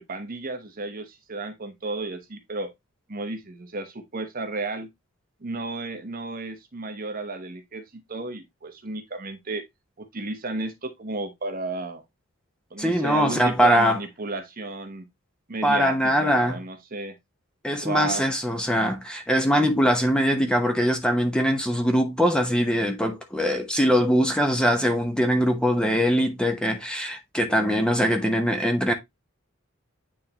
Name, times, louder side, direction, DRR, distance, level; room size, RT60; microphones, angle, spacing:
voice 1, 0.0-2.7 3.1-4.9 5.4-9.6 10.0-12.0 12.7-15.0 15.5-17.2 17.8-18.2, right 2 dB, 45° right, 1.0 m, -33 dB
voice 2, 12.8-14.0 15.6-16.6 17.6-28.9, equal, 5° left, 0.9 m, -22 dB
8.9 x 3.7 x 2.9 m
head